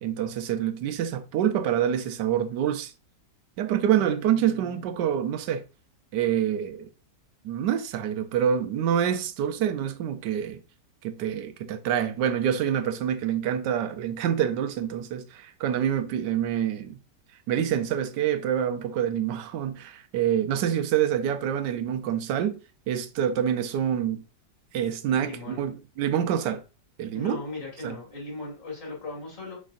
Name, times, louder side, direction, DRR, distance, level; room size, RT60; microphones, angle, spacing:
voice 1, 0.0-2.9 3.6-5.6 6.1-6.9 7.4-10.6 11.0-17.0 17.5-22.6 22.9-24.2 24.7-26.6 27.0-27.4 27.8-28.0, right 9 dB, 85° right, 1.2 m, -26 dB
voice 2, 3.9-4.9 25.2-25.7 27.1-29.6, left 2 dB, 50° left, 2.4 m, -38 dB
6.3 x 3.4 x 2.5 m
omnidirectional pair, 1.8 m